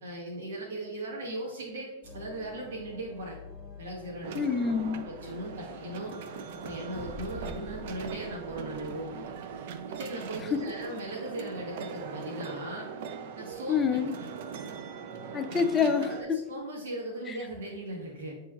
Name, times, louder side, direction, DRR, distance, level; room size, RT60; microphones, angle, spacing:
voice 1, 0.0-3.4 3.8-4.3 4.9-6.1 6.5-9.3 9.9-12.9 13.4-13.8 16.2-18.4, right 1 dB, 90° right, 1.0 m, -38 dB
sound 1, 2.0-11.4, left 1 dB, 5° right, 1.5 m, -48 dB
sound 2, 4.2-16.2, right 6 dB, 65° right, 0.4 m, -41 dB
voice 2, 4.3-5.1 10.5-10.6 13.7-14.2 15.3-16.4 17.3-17.4, left 6 dB, 20° left, 0.4 m, -27 dB
7.4 x 3.0 x 2.3 m
supercardioid pair, 140°, 0 cm